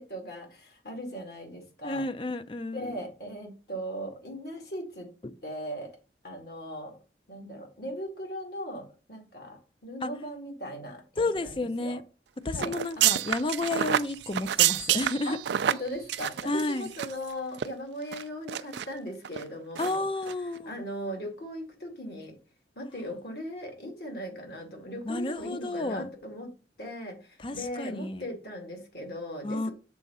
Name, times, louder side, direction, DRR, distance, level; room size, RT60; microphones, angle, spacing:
voice 1, 0.0-2.1 2.7-5.1 5.4-6.0 6.2-7.0 7.3-12.0 12.5-13.1 15.2-15.4 15.7-20.0 20.7-22.4 22.8-26.5 26.8-29.7, equal, 60° left, 2.2 m, -38 dB
voice 2, 1.8-3.0 10.0-10.1 11.2-12.0 12.4-15.4 16.4-16.9 19.8-20.7 25.0-26.1 27.4-28.2 29.4-29.7, left 2 dB, 30° left, 0.5 m, -31 dB
sound 1, 12.6-17.3 17.5-17.7 18.1-18.9 19.2-19.4 19.8-20.0 20.2-20.3, right 11 dB, 75° right, 0.4 m, -28 dB
6.9 x 3.7 x 5.4 m
head